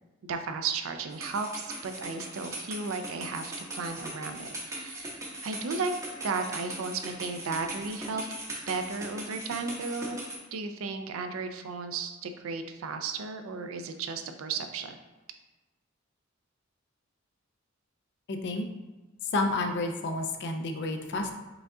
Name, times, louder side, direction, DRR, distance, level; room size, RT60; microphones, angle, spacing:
voice 1, 0.2-5.9 6.2-8.3 8.7-10.2 10.5-15.0, right 4 dB, 85° right, 7 dB, 0.4 m, -34 dB
sound 1, 1.1-10.4, right 1 dB, 15° right, 0.7 m, -40 dB
voice 2, 18.3-18.6 19.3-21.3, left 2 dB, 55° left, 4 dB, 0.5 m, -30 dB
4.9 x 2.3 x 3.7 m, 1.1 s
head